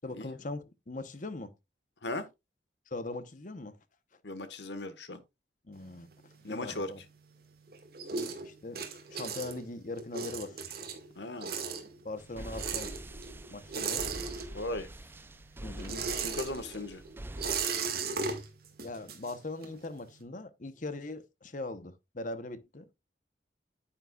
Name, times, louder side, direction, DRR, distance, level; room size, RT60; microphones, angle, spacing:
voice 1, 0.0-1.5 2.9-3.8 5.7-6.1 6.5-7.0 8.1-10.6 12.0-13.0 13.5-14.1 15.6-16.0 18.8-22.9, left 2 dB, 45° left, 0.9 m, -41 dB
voice 2, 4.2-5.2 6.4-6.9 11.1-11.5 14.5-14.9 15.9-17.0, left 2 dB, 70° left, 1.4 m, -37 dB
sound 1, 5.7-7.4 7.7-14.9 15.2-19.9, right 5 dB, 55° right, 1.9 m, -37 dB
sound 2, 12.2-17.6, right 1 dB, 10° right, 0.4 m, -45 dB
9.3 x 8.8 x 2.3 m
head